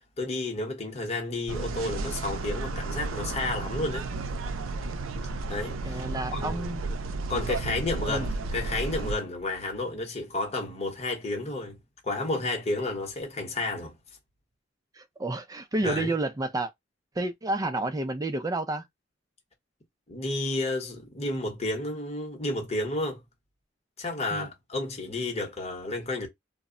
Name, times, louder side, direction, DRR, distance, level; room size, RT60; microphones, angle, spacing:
voice 1, 0.2-4.1 5.5-6.0 6.3-6.6 7.3-11.8 12.0-13.9 15.8-16.1 20.1-23.2 24.0-26.3, left 2 dB, 35° left, 0.9 m, -31 dB
sound 1, 1.5-9.2, right 3 dB, 85° right, 0.4 m, -33 dB
voice 2, 5.8-6.8 8.1-8.3 14.9-16.7 17.2-18.9 24.3-24.5, right 2 dB, 20° right, 0.4 m, -30 dB
2.1 x 2.0 x 3.6 m
head